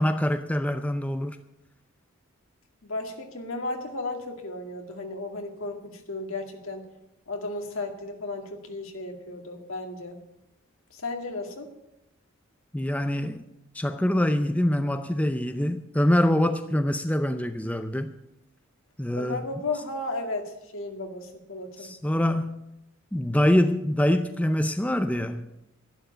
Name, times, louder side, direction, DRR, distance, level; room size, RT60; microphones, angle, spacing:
voice 1, 0.0-1.4 12.7-13.5 13.7-18.1 19.0-19.4 21.8-22.5 23.1-25.5, left 1 dB, 5° left, 0.5 m, -24 dB
voice 2, 2.8-6.9 7.3-10.2 10.9-11.7 19.1-21.9, left 2 dB, 70° left, 2.0 m, -34 dB
11.5 x 11.5 x 6.8 m
head